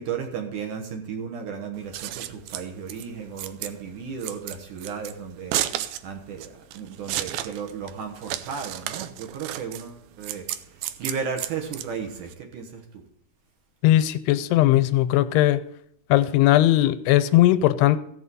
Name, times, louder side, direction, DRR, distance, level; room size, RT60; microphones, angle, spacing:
voice 1, 0.0-13.0, right 6 dB, 60° right, 3 dB, 2.4 m, -35 dB
Scissors, 1.7-12.3, right 12 dB, 80° right, 2.3 m, -33 dB
voice 2, 13.8-15.6 16.1-18.0, left 14 dB, 90° left, 12 dB, 2.7 m, -18 dB
16.0 x 6.3 x 5.4 m, 0.70 s
omnidirectional pair, 4.6 m